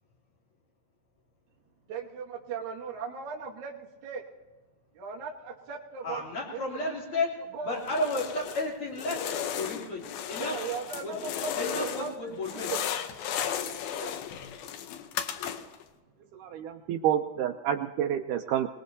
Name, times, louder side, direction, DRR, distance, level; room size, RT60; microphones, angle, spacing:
voice 1, 1.9-4.2 4.9-6.3 6.5-7.2 7.5-7.8 10.4-12.8 13.9-14.2, right 5 dB, 60° right, -3 dB, 2.5 m, -38 dB
voice 2, 6.0-7.3 7.6-9.2 9.6-10.6 11.0-11.1 11.5-12.7, left 2 dB, 40° left, -3 dB, 3.8 m, -32 dB
sound 1, 7.8-8.7 9.0-12.2 12.4-15.8, left 9 dB, 85° left, 2.7 m, -35 dB
voice 3, 16.3-18.7, right 10 dB, 80° right, 6 dB, 1.9 m, -29 dB
25.5 x 19.5 x 2.7 m, 1.2 s
omnidirectional pair, 4.2 m